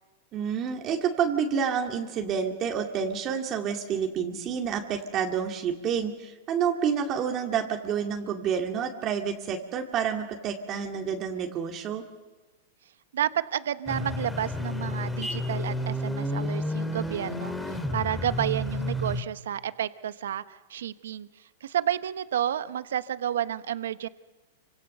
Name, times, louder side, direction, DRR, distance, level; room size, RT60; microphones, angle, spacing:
voice 1, 0.3-12.0, right 7 dB, 30° right, 3 dB, 2.2 m, -29 dB
voice 2, 13.1-21.3 21.6-24.1, right 10 dB, 85° right, 13 dB, 1.1 m, -31 dB
sound 1, 13.9-19.2, left 1 dB, 5° left, 2.3 m, -31 dB
28.5 x 25.5 x 6.8 m, 1.2 s
supercardioid pair, 150°, 0 cm